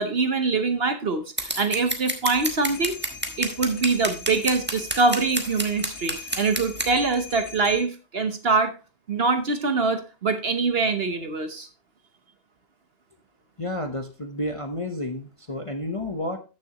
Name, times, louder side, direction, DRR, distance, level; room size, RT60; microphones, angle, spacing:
voice 1, 0.0-3.0 3.4-8.7 9.1-11.7, right 4 dB, 45° right, 8 dB, 1.1 m, -24 dB
Scissors, 1.4-6.9, right 1 dB, 10° right, 1.0 m, -29 dB
sound 1, 2.3-7.8, left 5 dB, 55° left, 1.3 m, -42 dB
voice 2, 13.6-16.4, left 1 dB, 25° left, 5 dB, 0.8 m, -31 dB
13.5 x 6.6 x 3.0 m, 0.31 s
omnidirectional pair, 1.5 m